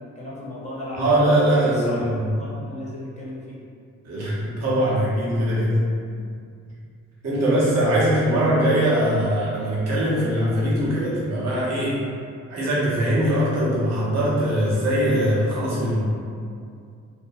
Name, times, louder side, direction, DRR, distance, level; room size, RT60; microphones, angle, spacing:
voice 1, 0.0-1.2 1.7-3.6, left 1 dB, 20° left, -6 dB, 0.7 m, -35 dB
voice 2, 0.9-2.2 4.0-5.9 7.2-12.0 12.5-16.1, right 1 dB, 60° right, -7 dB, 0.9 m, -21 dB
2.6 x 2.2 x 2.5 m, 2.3 s
cardioid pair, 90°, 30 cm